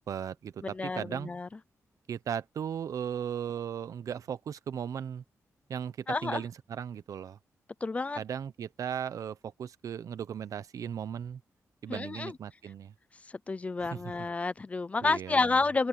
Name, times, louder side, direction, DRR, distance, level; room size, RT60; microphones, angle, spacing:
voice 1, 0.1-1.3 2.1-5.2 5.7-7.4 8.2-11.4 11.8-12.9 13.8-14.0 15.0-15.6, right 8 dB, 75° right, 0.9 m, -37 dB
voice 2, 0.6-1.5 6.1-6.4 7.8-8.2 11.9-12.4 13.5-15.9, left 3 dB, 25° left, 0.4 m, -30 dB
wide cardioid pair, 170°, 6 cm